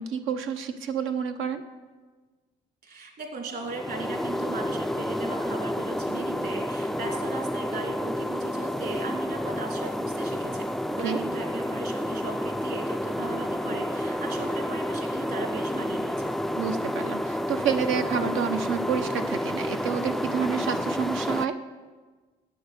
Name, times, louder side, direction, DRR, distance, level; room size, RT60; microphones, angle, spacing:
voice 1, 0.0-1.6 11.0-11.2 16.5-21.6, right 7 dB, 80° right, 7 dB, 1.0 m, -29 dB
voice 2, 2.8-10.7 11.0-16.3, right 3 dB, 50° right, 3 dB, 2.6 m, -37 dB
sound 1, 3.6-21.5, left 1 dB, ahead, 0.3 m, -30 dB
9.3 x 7.4 x 8.3 m, 1.3 s
cardioid pair, 90°, 20 cm